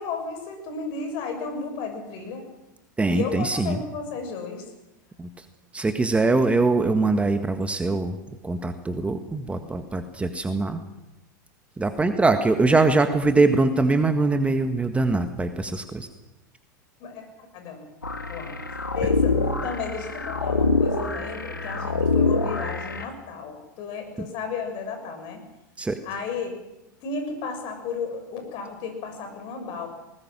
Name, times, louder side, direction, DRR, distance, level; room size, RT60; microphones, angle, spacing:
voice 1, 0.0-2.5 3.1-4.6 12.4-12.5 17.0-17.3 17.5-17.9 18.3-18.6 18.9-25.4 26.0-26.5 27.0-29.9, left 5 dB, 50° left, 6 dB, 6.6 m, -33 dB
voice 2, 3.0-3.8 5.2-5.3 5.7-8.1 8.4-10.8 11.8-16.1 24.2-24.3 25.8-26.0, right 3 dB, 10° right, 7 dB, 1.7 m, -22 dB
sound 1, 18.0-23.0, left 3 dB, 90° left, 2.3 m, -25 dB
20.5 x 19.5 x 7.6 m, 0.96 s
figure-of-eight pair, 90°, 10 cm